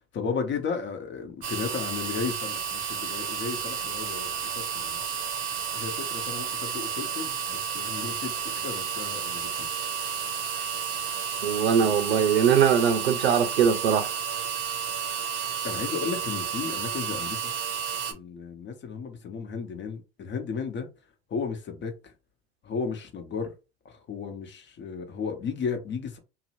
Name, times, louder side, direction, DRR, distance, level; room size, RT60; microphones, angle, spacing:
voice 1, 0.1-4.3 4.7-5.0 5.7-8.4 8.6-9.7 15.6-17.5 18.1-20.9 21.3-22.1 22.6-23.5 23.8-26.2, left 5 dB, 35° left, 0.9 m, -34 dB
sound 1, 1.4-18.1, right 7 dB, 40° right, 0.7 m, -32 dB
voice 2, 11.4-14.1, right 7 dB, 90° right, 0.6 m, -21 dB
2.7 x 2.0 x 2.9 m
hypercardioid pair, 80°, 31 cm